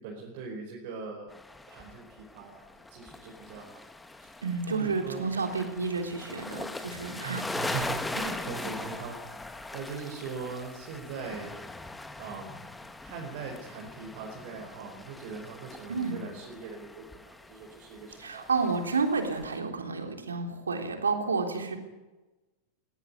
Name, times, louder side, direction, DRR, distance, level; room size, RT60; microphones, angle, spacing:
voice 1, 0.0-1.4 1.7-3.9 4.2-4.3 4.7-5.3 7.2-9.4 9.7-11.6 12.2-12.7 13.0-18.5, right 5 dB, 50° right, -1 dB, 4.7 m, -40 dB
sound 1, 1.3-19.6, left 2 dB, 10° left, 1.5 m, -41 dB
voice 2, 4.4-7.4 15.9-16.2 18.2-21.8, right 4 dB, 75° right, 3 dB, 3.5 m, -30 dB
20.0 x 17.0 x 9.5 m, 1.1 s
figure-of-eight pair, 90°, 0 cm